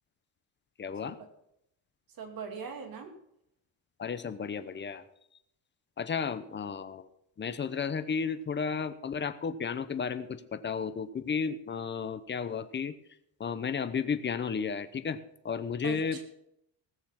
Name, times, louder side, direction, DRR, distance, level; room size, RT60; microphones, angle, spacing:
voice 1, 0.8-1.2 4.0-5.0 6.0-7.0 7.4-12.9 13.4-15.2 15.4-16.2, left 6 dB, 25° left, 12 dB, 0.8 m, -33 dB
voice 2, 2.1-3.1 15.8-16.2, right 5 dB, 50° right, 4 dB, 2.7 m, -41 dB
18.0 x 6.8 x 5.8 m, 0.77 s
cardioid pair, 135°, 45 cm